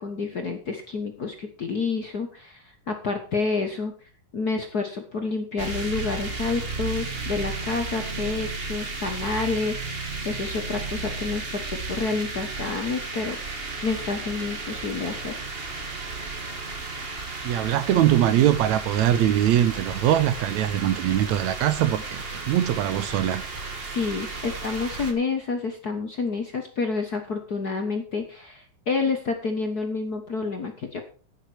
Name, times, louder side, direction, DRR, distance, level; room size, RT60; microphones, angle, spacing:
voice 1, 0.0-3.9 4.3-15.3 23.8-31.0, left 4 dB, 45° left, 1.3 m, -29 dB
sound 1, 5.6-25.1, right 3 dB, 25° right, 1.3 m, -34 dB
voice 2, 17.4-23.4, right 11 dB, 75° right, 2.1 m, -22 dB
10.5 x 9.9 x 4.6 m
omnidirectional pair, 3.4 m